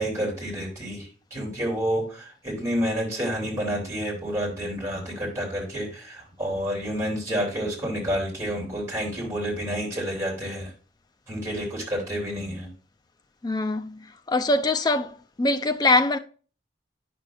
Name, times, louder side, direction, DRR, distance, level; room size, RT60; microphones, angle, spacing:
voice 1, 0.0-10.7 11.3-12.7, equal, 15° right, 3.1 m, -29 dB
voice 2, 13.4-16.2, left 2 dB, 20° left, 0.4 m, -23 dB
9.5 x 6.1 x 2.5 m
head